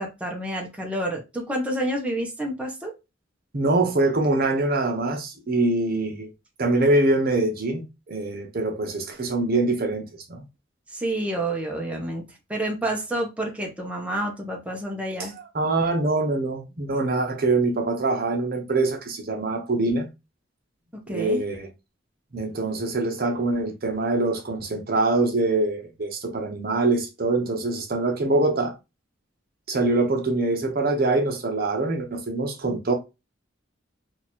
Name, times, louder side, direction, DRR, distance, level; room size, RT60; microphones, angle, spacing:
voice 1, 0.0-2.9 10.9-12.2 12.5-15.3 21.1-21.4, right 1 dB, 5° right, 0.7 m, -29 dB
voice 2, 3.5-6.3 6.6-10.0 10.3-10.4 15.4-20.1 21.1-21.7 22.3-28.7 29.7-32.9, right 2 dB, 50° right, 0.8 m, -24 dB
2.9 x 2.4 x 4.2 m
head